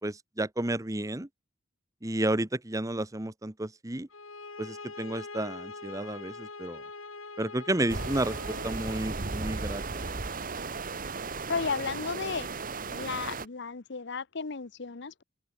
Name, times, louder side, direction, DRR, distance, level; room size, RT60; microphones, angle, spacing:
voice 1, 0.0-1.3 2.0-4.1 4.6-6.8 7.4-10.2, right 1 dB, 15° right, 1.0 m, -32 dB
sound 1, 4.1-9.1, left 3 dB, 90° left, 5.6 m, -43 dB
sound 2, 7.9-13.5, right 4 dB, 45° right, 1.4 m, -35 dB
voice 2, 11.5-12.5 12.9-15.2, left 5 dB, 60° left, 0.9 m, -34 dB
open air
head